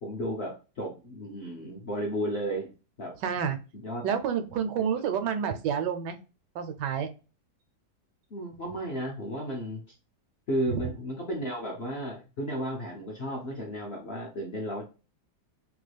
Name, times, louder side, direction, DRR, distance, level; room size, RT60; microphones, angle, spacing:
voice 1, 0.0-2.7 3.0-3.1 3.7-4.1 8.3-9.8 10.5-14.8, equal, 60° left, -1 dB, 0.7 m, -33 dB
voice 2, 3.2-3.6 4.0-6.2 6.5-7.1 10.7-10.8, right 7 dB, 90° right, 8 dB, 1.2 m, -29 dB
3.0 x 2.3 x 3.2 m, 0.32 s
omnidirectional pair, 1.8 m